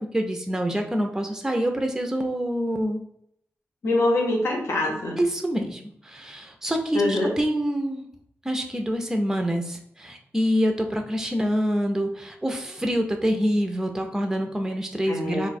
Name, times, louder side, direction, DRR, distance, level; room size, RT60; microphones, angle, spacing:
voice 1, 0.1-3.0 5.2-8.0 8.4-15.5, equal, 10° right, 4 dB, 0.5 m, -26 dB
voice 2, 3.8-5.2 6.9-7.3 15.1-15.5, left 2 dB, 70° left, -2 dB, 1.0 m, -24 dB
2.5 x 2.3 x 4.0 m, 0.72 s
wide cardioid pair, 100°, 5 cm